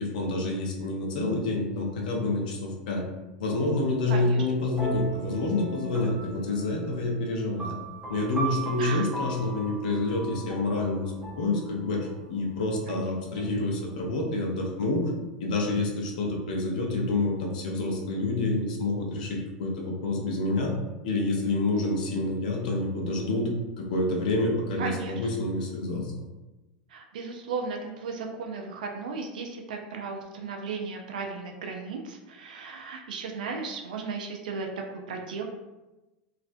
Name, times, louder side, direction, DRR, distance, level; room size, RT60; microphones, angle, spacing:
voice 1, 0.0-3.0 3.4-7.7 8.1-12.0 12.3-15.1 15.4-20.7 21.0-23.5 23.8-26.1, left 2 dB, 80° left, 0 dB, 0.6 m, -28 dB
voice 2, 4.1-4.4 8.8-9.0 12.9-13.5 24.8-25.2 26.9-34.7 35.1-35.4, right 4 dB, 90° right, 2 dB, 0.3 m, -35 dB
sound 1, 4.8-12.3, right 3 dB, 5° right, 0.6 m, -38 dB
2.4 x 2.0 x 2.6 m, 1.1 s
hypercardioid pair, 105°, 4 cm